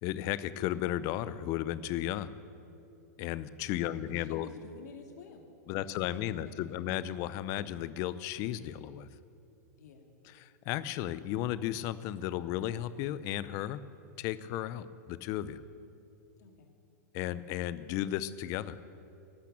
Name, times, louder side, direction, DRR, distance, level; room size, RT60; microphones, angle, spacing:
voice 1, 0.0-2.3 3.2-4.5 5.7-9.1 10.4-13.8 14.2-15.6 17.1-18.8, left 13 dB, 35° left, 16 dB, 0.6 m, -34 dB
voice 2, 3.8-6.8 9.8-10.1 16.4-16.7, left 5 dB, 70° left, 4 dB, 2.2 m, -51 dB
12.0 x 12.0 x 8.5 m, 2.7 s
supercardioid pair, 150°, 9 cm